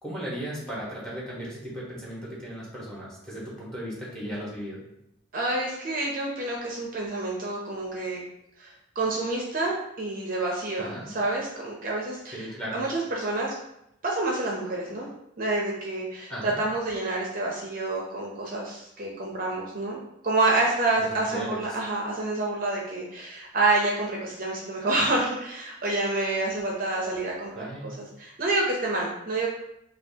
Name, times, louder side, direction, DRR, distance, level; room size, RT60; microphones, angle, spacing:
voice 1, 0.0-4.9 10.8-11.1 12.3-12.8 16.3-16.6 21.0-21.8 27.5-28.0, equal, 5° left, -5 dB, 1.2 m, -36 dB
voice 2, 5.3-8.2 8.6-12.5 12.7-13.6 14.0-15.1 15.4-29.5, right 2 dB, 45° right, -2 dB, 0.6 m, -28 dB
5.6 x 2.3 x 2.7 m, 0.81 s
head